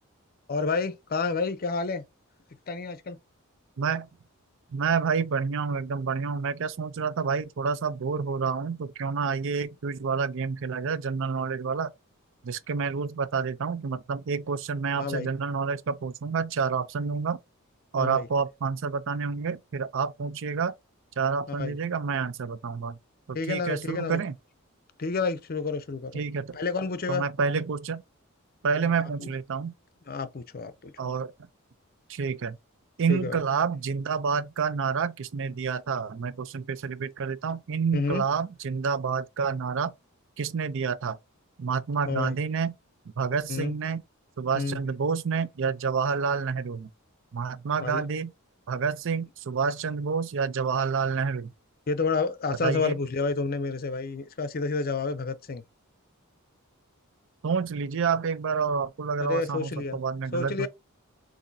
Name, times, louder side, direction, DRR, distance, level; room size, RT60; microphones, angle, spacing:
voice 1, 0.5-2.0 2.7-3.2 15.0-15.3 18.0-18.3 21.6-21.7 23.3-24.2 25.0-26.2 26.5-27.2 28.8-28.9 29.2-29.3 30.1-30.9 33.1-33.4 37.9-38.2 42.0-42.4 43.5-43.7 44.5-44.8 47.8-48.0 51.9-55.6 59.2-60.0 60.3-60.7, left 4 dB, 40° left, 0.6 m, -29 dB
voice 2, 4.7-11.9 12.4-17.4 17.9-20.7 21.2-23.0 23.3-24.3 26.1-26.6 27.1-28.0 28.6-29.7 31.0-31.3 32.1-32.6 33.0-39.9 40.4-41.2 41.6-42.7 43.2-44.0 44.4-46.9 47.3-48.3 48.7-51.5 52.6-53.0 57.4-60.7, right 5 dB, 60° right, 0.5 m, -28 dB
7.0 x 2.7 x 2.7 m
head